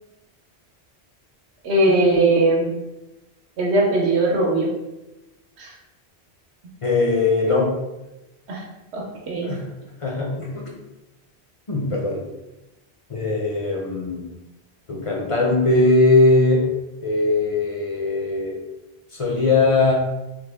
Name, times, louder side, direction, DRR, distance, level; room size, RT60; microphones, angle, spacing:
voice 1, 1.6-2.8 3.6-4.7 5.6-5.7 8.5-8.6 8.9-9.5, right 2 dB, 80° right, -1 dB, 1.0 m, -19 dB
voice 2, 6.8-7.8 9.4-9.6 10.0-10.6 11.7-12.2 13.1-14.2 14.9-16.7 17.0-18.6 19.1-19.9, left 2 dB, 40° left, -3 dB, 0.5 m, -20 dB
3.2 x 2.1 x 3.3 m, 0.99 s
omnidirectional pair, 1.1 m